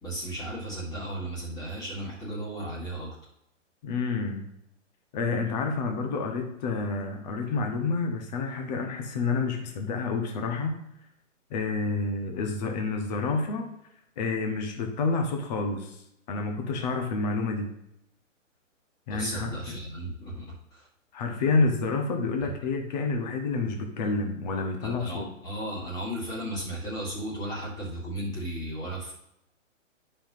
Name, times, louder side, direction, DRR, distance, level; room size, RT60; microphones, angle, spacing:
voice 1, 0.0-3.2 19.1-20.4 20.7-20.9 22.4-22.5 24.8-29.1, right 1 dB, 10° left, -4 dB, 1.7 m, -35 dB
voice 2, 3.8-4.5 5.1-10.8 11.5-13.7 14.2-16.0 16.3-17.7 19.1-19.5 21.1-25.3, left 4 dB, 35° left, 4 dB, 1.2 m, -29 dB
10.0 x 5.7 x 2.7 m, 0.79 s
hypercardioid pair, 150°, 39 cm